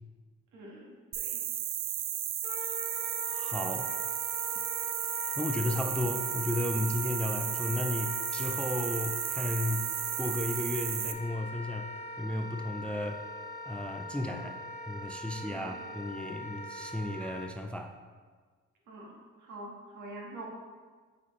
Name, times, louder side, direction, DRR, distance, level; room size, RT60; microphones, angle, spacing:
voice 1, 0.5-1.4 15.5-15.8 18.9-20.5, right 1 dB, 80° right, -2 dB, 1.6 m, -46 dB
sound 1, 1.1-11.1, right 11 dB, 60° right, 0.5 m, -34 dB
Wind instrument woodwind instrument, 2.4-17.5, left 1 dB, 30° left, 1.3 m, -41 dB
voice 2, 3.3-3.9 5.4-9.9 10.2-11.9 12.2-13.2 13.7-14.6 14.9-18.0, left 1 dB, 5° left, 5 dB, 0.4 m, -34 dB
8.2 x 4.2 x 3.1 m, 1.5 s
cardioid pair, 90°, 30 cm